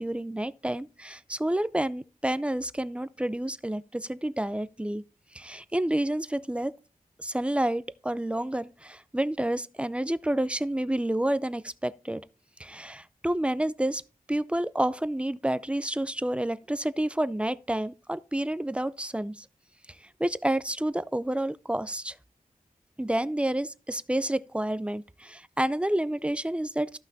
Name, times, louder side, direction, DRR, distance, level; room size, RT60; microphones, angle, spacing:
voice 1, 0.0-5.0 5.3-6.7 7.2-12.2 12.6-14.0 14.3-19.5 20.2-22.2 23.0-27.0, right 1 dB, 10° right, 0.4 m, -29 dB
14.0 x 5.8 x 2.6 m
wide cardioid pair, 100°, 14 cm